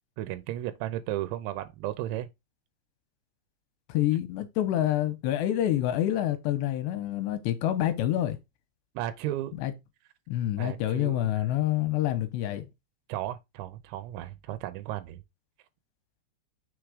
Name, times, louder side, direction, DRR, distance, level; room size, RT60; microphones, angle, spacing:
voice 1, 0.2-2.3 9.0-9.5 10.5-11.3 13.1-15.2, right 14 dB, 90° right, 3.0 m, -34 dB
voice 2, 3.9-8.4 9.6-9.7 10.3-12.7, left 13 dB, 80° left, 2.8 m, -27 dB
6.5 x 3.6 x 4.9 m
omnidirectional pair, 5.2 m